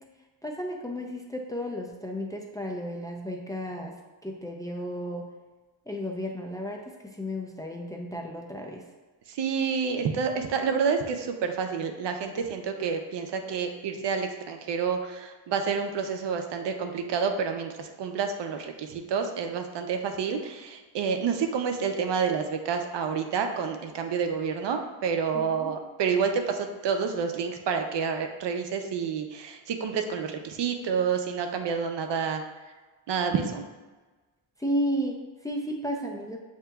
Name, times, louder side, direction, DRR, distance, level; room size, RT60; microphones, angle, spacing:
voice 1, 0.4-3.9 4.2-5.2 5.9-6.8 7.2-8.8 25.3-25.7 34.6-36.4, equal, 10° left, 1 dB, 0.4 m, -33 dB
voice 2, 9.3-32.4 33.1-33.6, right 6 dB, 70° right, 5 dB, 0.6 m, -29 dB
7.9 x 2.9 x 2.3 m, 1.3 s
cardioid pair, 105°, 43 cm